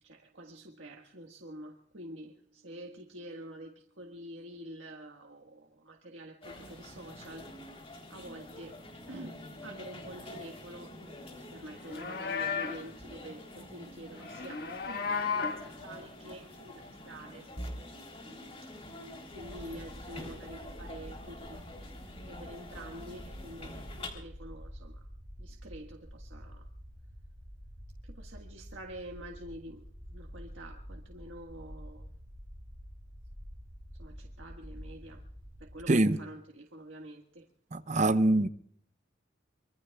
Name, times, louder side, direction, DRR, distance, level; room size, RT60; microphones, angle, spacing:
voice 1, 0.0-7.5 8.1-8.8 9.1-11.1 11.5-18.9 19.3-21.9 22.2-25.1 25.4-26.7 28.0-32.1 33.9-35.2 35.6-37.5, right 1 dB, 80° right, 1.6 m, -48 dB
sound 1, 6.4-24.1, left 1 dB, 30° left, 3.5 m, -47 dB
Livestock farm animals working animals, 11.7-12.9 14.2-15.7, left 5 dB, 50° left, 1.6 m, -34 dB
sound 2, 19.3-35.8, equal, 15° right, 7.5 m, -48 dB
voice 2, 35.9-36.2 37.7-38.5, right 2 dB, 40° right, 0.7 m, -24 dB
25.0 x 24.0 x 2.4 m
head